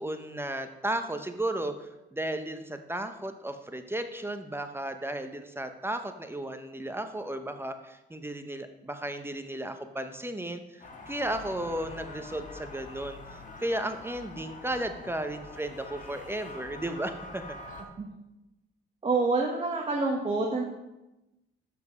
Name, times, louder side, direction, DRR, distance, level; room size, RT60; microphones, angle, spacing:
voice 1, 0.0-13.2 13.6-17.4, right 1 dB, 10° right, 7 dB, 0.7 m, -34 dB
sound 1, 10.8-17.8, left 2 dB, 40° left, 1.5 m, -45 dB
voice 2, 19.0-20.6, right 3 dB, 30° right, 0 dB, 1.3 m, -27 dB
7.6 x 5.9 x 5.9 m, 0.97 s
cardioid pair, 90°, 20 cm